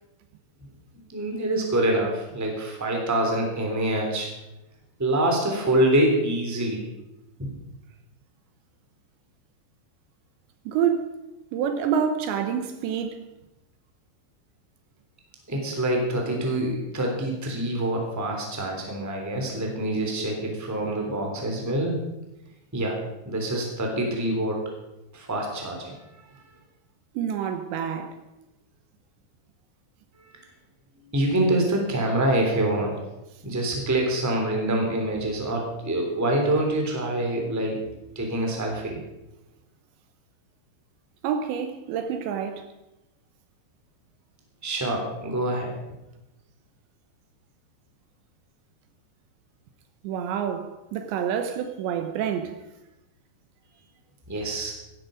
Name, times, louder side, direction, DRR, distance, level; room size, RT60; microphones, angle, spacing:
voice 1, 1.1-4.3 5.0-6.8 7.4-7.5 15.5-22.0 22.7-23.0 23.2-24.7 25.1-26.0 31.1-33.0 33.4-39.0 44.6-45.7 54.3-54.7, right 1 dB, 5° right, 2.0 m, -25 dB
voice 2, 10.7-11.1 11.5-13.2 27.2-28.1 41.2-42.7 50.0-52.5, right 8 dB, 80° right, 3.2 m, -27 dB
16.0 x 12.5 x 5.2 m
omnidirectional pair, 5.4 m